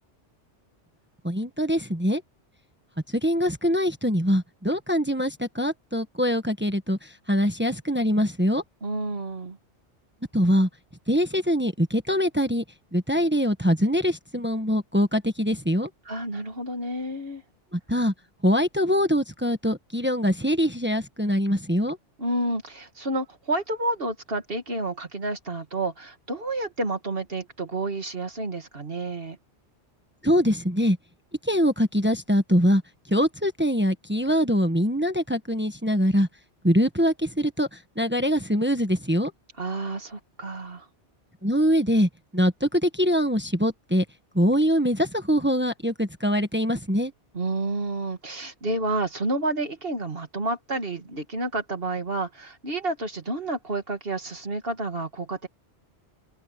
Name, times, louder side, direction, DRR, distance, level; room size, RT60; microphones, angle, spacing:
voice 1, 1.2-2.2 3.1-8.6 10.3-10.7 11.1-12.6 12.9-15.9 17.7-18.1 18.4-22.0 30.2-31.0 31.4-32.8 33.1-36.3 36.6-39.3 41.4-44.0 44.3-47.1, equal, 10° right, 1.3 m, -23 dB
voice 2, 8.8-9.6 16.1-17.4 22.2-29.4 39.6-40.9 47.3-55.5, right 2 dB, 55° right, 2.5 m, -30 dB
open air
omnidirectional pair, 1.2 m